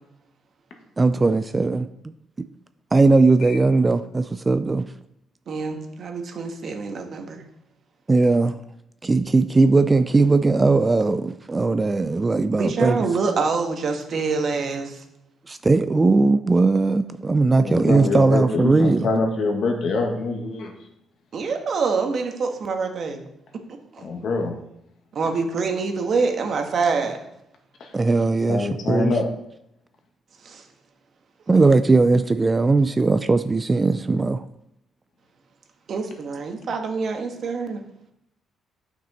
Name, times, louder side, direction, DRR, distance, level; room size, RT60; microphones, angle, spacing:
voice 1, 1.0-2.1 2.9-4.9 8.1-8.6 9.0-13.1 15.5-19.1 27.9-29.1 31.5-34.4, right 3 dB, 25° right, 11 dB, 0.4 m, -19 dB
voice 2, 5.5-7.4 12.5-15.0 21.3-23.2 23.9-24.1 25.1-27.2 30.4-30.6 31.5-31.8 35.9-37.8, right 4 dB, 55° right, 4 dB, 1.4 m, -26 dB
voice 3, 17.6-20.7 24.0-24.6 27.8-27.9 28.5-29.3, left 3 dB, 65° left, 3 dB, 1.7 m, -24 dB
8.9 x 6.0 x 4.2 m, 0.79 s
cardioid pair, 90°, 0 cm